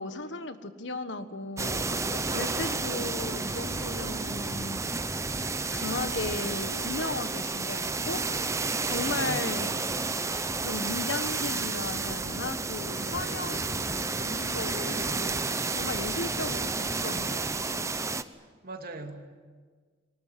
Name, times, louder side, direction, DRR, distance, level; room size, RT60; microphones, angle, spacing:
voice 1, 0.0-4.8 5.7-9.9 10.6-15.5 15.7-18.0, left 2 dB, 70° left, 10 dB, 1.5 m, -36 dB
sound 1, 1.6-18.2, right 3 dB, 15° right, 0.7 m, -31 dB
voice 2, 2.0-2.5 8.9-9.4 13.0-13.4 18.6-19.2, right 2 dB, 50° right, 4 dB, 2.5 m, -40 dB
24.0 x 19.5 x 9.3 m, 1.5 s
head